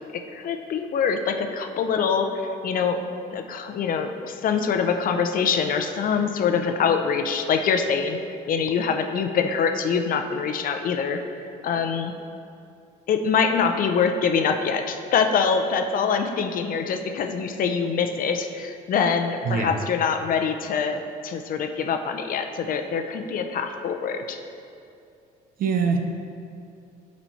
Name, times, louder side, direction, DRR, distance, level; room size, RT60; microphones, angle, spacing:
voice 1, 0.3-3.0 3.3-8.2 8.5-11.2 11.6-12.1 13.1-24.4, left 6 dB, 55° left, 6 dB, 0.7 m, -24 dB
voice 2, 19.4-19.8 25.6-26.0, right 5 dB, 60° right, 4 dB, 0.9 m, -23 dB
11.0 x 4.3 x 4.6 m, 2.5 s
cardioid pair, 110°, 17 cm